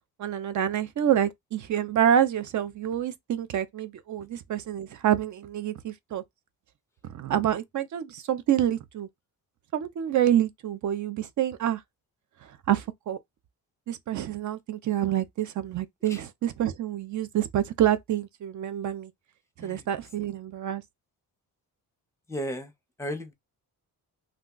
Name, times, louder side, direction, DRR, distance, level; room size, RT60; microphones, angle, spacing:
voice 1, 0.2-6.2 7.0-9.1 9.7-11.8 12.4-13.2 13.9-19.1 19.6-20.8, right 10 dB, 50° right, 0.5 m, -27 dB
voice 2, 22.3-22.7 23.0-23.3, equal, 5° left, 0.6 m, -34 dB
2.4 x 2.2 x 3.7 m
cardioid pair, 120°, 39 cm